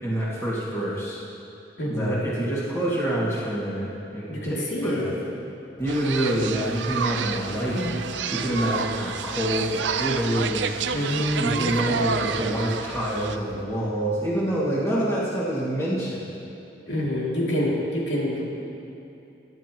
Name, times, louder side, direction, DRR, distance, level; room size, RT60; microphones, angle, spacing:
voice 1, 0.0-1.2 1.8-4.5 4.8-5.1 5.8-8.0 8.3-10.7 11.1-16.3, right 1 dB, 15° left, -7 dB, 2.1 m, -26 dB
voice 2, 1.8-2.3 4.3-5.2 10.9-11.7 16.9-18.7, left 1 dB, 75° left, -5 dB, 2.7 m, -27 dB
sound 1, 5.8-13.6, right 1 dB, 25° right, 1.3 m, -45 dB
sound 2, 5.9-13.4, right 6 dB, 80° right, 0.5 m, -29 dB
22.0 x 11.0 x 3.0 m, 2.9 s
head